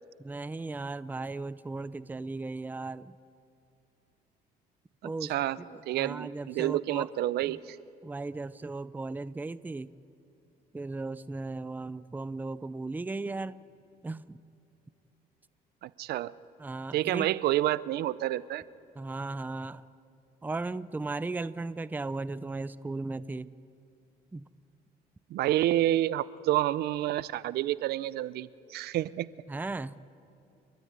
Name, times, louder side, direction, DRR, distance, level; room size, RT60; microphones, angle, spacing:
voice 1, 0.2-3.2 5.0-7.1 7.4-7.6 8.0-9.9 10.7-13.6 14.0-14.4 16.6-17.3 19.0-19.8 20.4-23.5 24.3-24.5 29.5-30.0, right 3 dB, 10° right, 16 dB, 0.5 m, -36 dB
voice 2, 5.0-5.6 5.9-7.8 15.8-16.3 16.9-18.6 25.3-29.3, right 14 dB, 70° right, 18 dB, 0.6 m, -29 dB
30.0 x 13.5 x 9.4 m, 2.7 s
cardioid pair, 110°, 17 cm